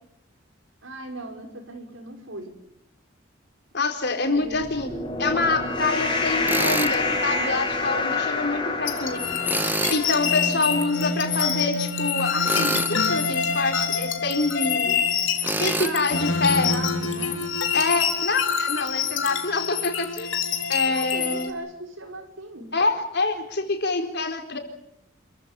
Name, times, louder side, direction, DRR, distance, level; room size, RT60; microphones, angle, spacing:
voice 1, 0.8-2.5 4.3-4.6 10.2-11.1 15.8-17.5 20.9-22.7, right 1 dB, 90° right, 3 dB, 5.9 m, -39 dB
voice 2, 3.7-4.9 5.2-9.2 9.9-15.0 15.6-16.7 17.7-20.3 20.7-21.5 22.7-24.6, left 3 dB, 55° left, 5 dB, 4.1 m, -26 dB
sound 1, 4.5-11.1, left 3 dB, 25° left, 5.0 m, -28 dB
Tools, 6.5-7.0 9.4-10.0 12.4-13.0 15.4-15.9, right 2 dB, 10° right, 1.2 m, -26 dB
sound 2, 8.9-21.5, left 6 dB, 80° left, 3.1 m, -26 dB
27.5 x 15.0 x 9.9 m, 0.76 s
head